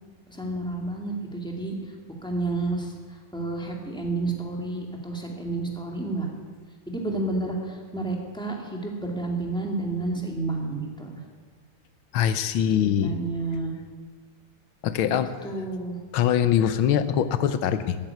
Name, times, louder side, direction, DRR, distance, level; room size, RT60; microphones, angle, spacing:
voice 1, 0.3-1.8 2.2-2.9 3.3-6.3 6.9-11.2 12.8-13.7 15.4-16.0, right 2 dB, ahead, 0 dB, 2.2 m, -30 dB
voice 2, 12.1-13.1 14.8-15.3 16.1-18.0, left 9 dB, 80° left, 12 dB, 1.6 m, -23 dB
13.5 x 9.5 x 9.5 m, 1.5 s
omnidirectional pair, 2.2 m